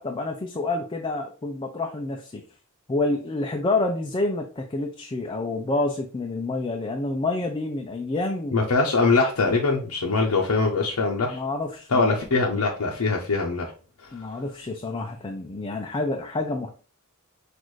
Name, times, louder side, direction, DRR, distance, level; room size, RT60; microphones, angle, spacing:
voice 1, 0.0-2.4 2.9-8.7 11.3-12.2 14.1-16.7, left 2 dB, 25° left, 3 dB, 0.4 m, -28 dB
voice 2, 8.5-11.4 11.9-13.7, left 3 dB, 90° left, -1 dB, 0.7 m, -22 dB
6.1 x 2.5 x 3.1 m, 0.38 s
head